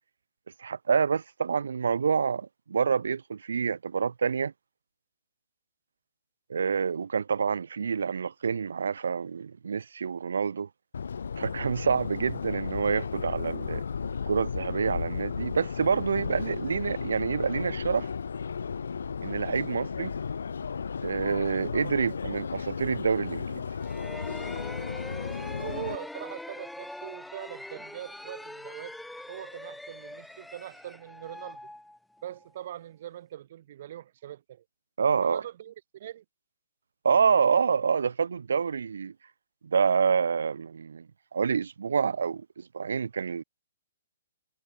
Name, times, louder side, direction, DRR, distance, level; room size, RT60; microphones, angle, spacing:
voice 1, 0.6-4.5 6.5-10.7 11.4-13.8 14.3-18.1 19.2-20.1 21.0-23.7 35.0-35.4 37.0-39.1 39.6-41.1 41.3-43.4, right 6 dB, 85° right, 0.8 m, -27 dB
Subway metro underground, 10.9-26.0, left 6 dB, 85° left, 0.3 m, -34 dB
sound 1, 23.8-32.5, left 1 dB, ahead, 1.1 m, -43 dB
voice 2, 25.5-29.0 29.3-31.6 32.2-34.6 35.1-36.2, right 12 dB, 45° right, 3.9 m, -42 dB
hypercardioid pair, 165°, 0 cm